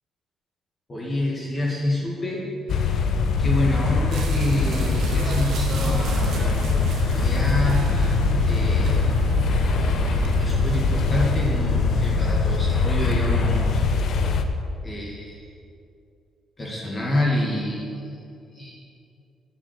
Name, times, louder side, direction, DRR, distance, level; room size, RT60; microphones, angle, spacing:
voice 1, 0.9-2.9 3.4-6.5 6.9-8.0 8.4-9.0 10.2-13.8 14.8-15.5 16.6-18.1 18.5-18.8, left 1 dB, 25° left, -3 dB, 2.0 m, -27 dB
sound 1, 2.7-14.4, left 3 dB, 65° left, 0.8 m, -22 dB
sound 2, 4.1-11.5, right 4 dB, 75° right, 1.3 m, -35 dB
7.6 x 7.5 x 8.1 m, 2.5 s
cardioid pair, 90°, 0 cm